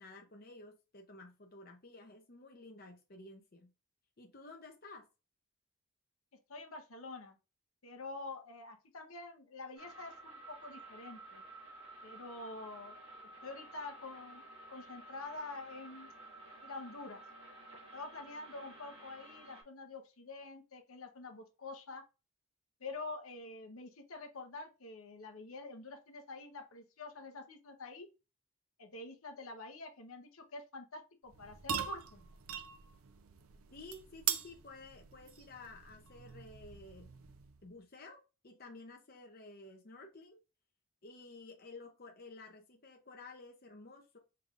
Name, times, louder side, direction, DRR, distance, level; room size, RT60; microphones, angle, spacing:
voice 1, 0.0-3.7 4.2-5.1 33.7-37.1 37.6-40.4 41.0-44.2, left 3 dB, 45° left, 0.7 m, -53 dB
voice 2, 6.5-7.3 7.8-11.4 12.0-13.0 13.4-14.4 14.7-16.1 16.6-17.2 17.9-22.0 22.8-28.1 28.8-32.3, left 3 dB, 80° left, 0.9 m, -47 dB
sound 1, 9.8-19.6, right 2 dB, 25° right, 2.0 m, -53 dB
sound 2, 31.3-37.7, right 8 dB, 75° right, 0.5 m, -42 dB
5.1 x 3.4 x 2.4 m
head